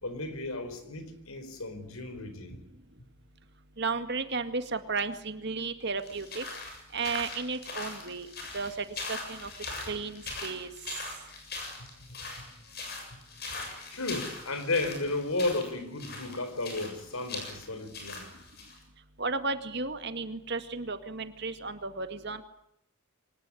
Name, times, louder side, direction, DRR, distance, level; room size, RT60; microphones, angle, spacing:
voice 1, 0.0-2.6 11.8-12.5 13.1-13.2 13.9-18.3, left 2 dB, 75° left, 4.4 m, -34 dB
voice 2, 3.8-6.4 6.9-8.3 8.5-9.5 9.9-10.7 19.2-22.4, right 4 dB, 50° right, 2.0 m, -34 dB
sound 1, 6.0-18.8, left 3 dB, 45° left, 7.4 m, -41 dB
24.0 x 20.0 x 9.9 m
head